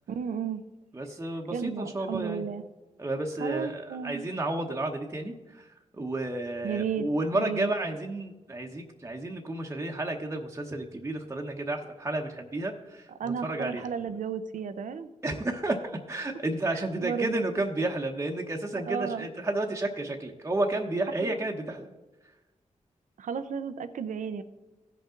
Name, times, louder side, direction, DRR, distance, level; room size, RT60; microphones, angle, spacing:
voice 1, 0.1-0.6 1.5-2.6 3.4-4.2 6.6-7.1 7.3-7.7 13.2-15.1 16.7-17.4 18.8-19.3 21.2-21.4 23.2-24.4, right 7 dB, 80° right, 11 dB, 0.6 m, -33 dB
voice 2, 0.9-2.4 3.0-5.7 5.9-13.9 15.2-21.9, right 2 dB, 20° right, 1 dB, 1.0 m, -31 dB
15.5 x 5.4 x 3.8 m, 1.1 s
cardioid pair, 75°, 13 cm